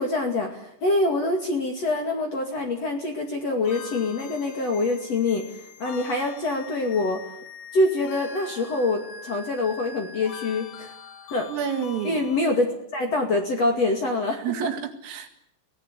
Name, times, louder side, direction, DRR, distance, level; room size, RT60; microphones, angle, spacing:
voice 1, 0.0-5.4 5.8-7.2 7.7-10.9 11.3-11.5 12.0-14.7, left 2 dB, 45° left, 3 dB, 2.6 m, -25 dB
sound 1, 3.7-12.4, left 6 dB, 80° left, 4.4 m, -43 dB
voice 2, 11.5-12.2 14.4-15.4, right 8 dB, 85° right, 5 dB, 4.9 m, -29 dB
22.5 x 17.5 x 9.8 m, 0.76 s
omnidirectional pair, 5.7 m